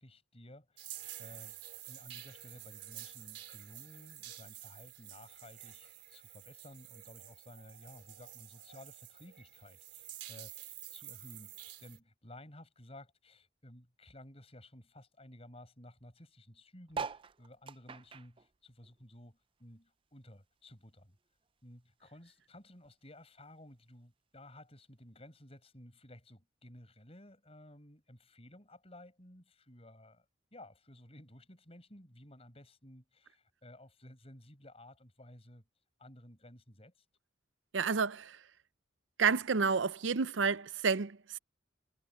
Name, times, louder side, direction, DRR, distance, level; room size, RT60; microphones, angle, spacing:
voice 1, 0.0-1.6 1.9-21.2 21.6-30.3 30.5-35.6 36.0-37.0, left 1 dB, 30° left, 6.0 m, -55 dB
sound 1, 0.8-12.0, right 14 dB, 65° right, 4.7 m, -50 dB
sound 2, 16.9-19.7 20.0-21.5 22.0-22.1 22.3-22.4 22.6-23.0 23.7-23.8, right 5 dB, 25° right, 0.5 m, -44 dB
voice 2, 37.7-38.4 39.2-41.4, right 5 dB, 85° right, 0.6 m, -30 dB
head